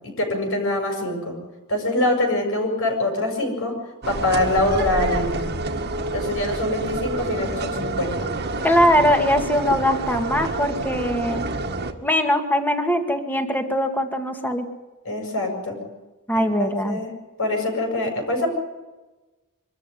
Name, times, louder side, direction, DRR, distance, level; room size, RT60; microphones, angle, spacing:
voice 1, 0.0-1.4 1.7-3.7 4.1-5.4 6.1-8.3 15.0-15.8 16.3-17.1 17.4-18.5, left 2 dB, 65° left, 2 dB, 7.2 m, -24 dB
sound 1, 4.0-11.9, right 2 dB, 50° right, 1.8 m, -28 dB
voice 2, 8.6-11.5 12.0-14.7 16.3-17.0, equal, 10° left, 5 dB, 2.1 m, -21 dB
25.0 x 13.5 x 10.0 m, 1.1 s
head